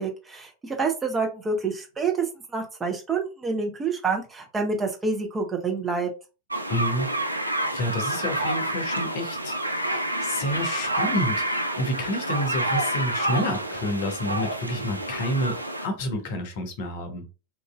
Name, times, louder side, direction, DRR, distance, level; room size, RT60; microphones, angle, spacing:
voice 1, 0.0-6.1, right 4 dB, 15° right, 0.7 m, -28 dB
sound 1, 6.5-15.9, right 1 dB, 85° right, 0.3 m, -28 dB
voice 2, 6.7-7.1 7.7-17.3, left 1 dB, 50° left, 0.7 m, -29 dB
2.9 x 2.6 x 2.3 m
figure-of-eight pair, 90°, 0 cm